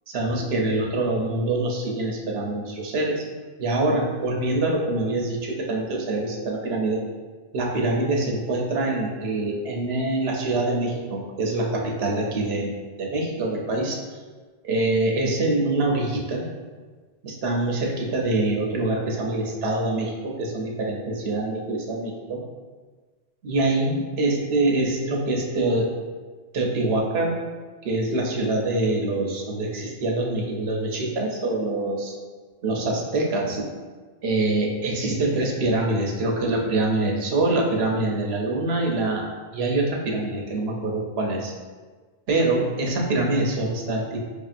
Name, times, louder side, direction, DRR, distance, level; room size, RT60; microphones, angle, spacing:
voice 1, 0.1-3.3 3.6-7.0 7.5-14.0 14.6-16.5 17.2-22.4 23.4-25.9 26.5-27.4 27.8-32.1 32.6-33.6 34.2-39.2 39.5-41.5 42.3-44.2, right 2 dB, 75° right, -1 dB, 0.9 m, -25 dB
4.8 x 2.7 x 2.4 m, 1.4 s
omnidirectional pair, 1.0 m